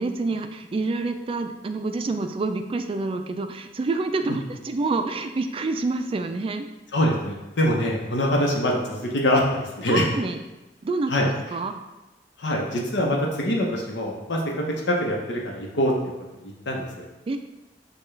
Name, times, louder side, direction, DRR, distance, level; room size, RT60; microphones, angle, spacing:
voice 1, 0.0-6.7 9.9-10.4 10.8-11.7 17.3-17.4, right 3 dB, 30° right, 7 dB, 0.3 m, -27 dB
voice 2, 6.9-10.1 11.1-11.3 12.4-15.9 16.4-17.0, left 1 dB, 80° left, -1 dB, 0.8 m, -24 dB
6.7 x 2.3 x 3.2 m, 1.1 s
head